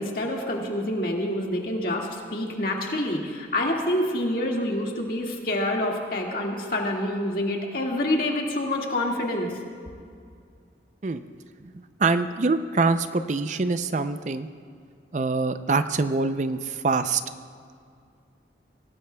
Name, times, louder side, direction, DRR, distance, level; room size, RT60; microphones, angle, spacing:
voice 1, 0.0-9.5, left 1 dB, 50° left, -1 dB, 1.9 m, -27 dB
voice 2, 12.0-14.5 15.1-17.2, right 3 dB, 40° right, 10 dB, 0.4 m, -24 dB
23.5 x 18.0 x 2.3 m, 2.3 s
head